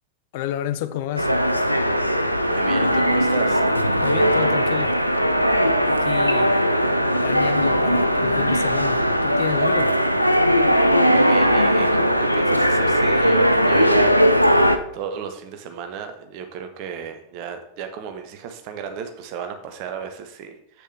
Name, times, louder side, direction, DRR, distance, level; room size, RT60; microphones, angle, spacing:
voice 1, 0.3-1.3 4.0-5.0 5.9-6.6 7.2-10.0, left 12 dB, 50° left, 0.5 m, -30 dB
sound 1, 1.2-14.8, equal, 90° right, 0.5 m, -19 dB
voice 2, 2.5-3.6 11.1-14.3 14.5-20.8, right 7 dB, 45° right, 1.1 m, -34 dB
7.9 x 6.7 x 3.4 m
figure-of-eight pair, 90°, 0 cm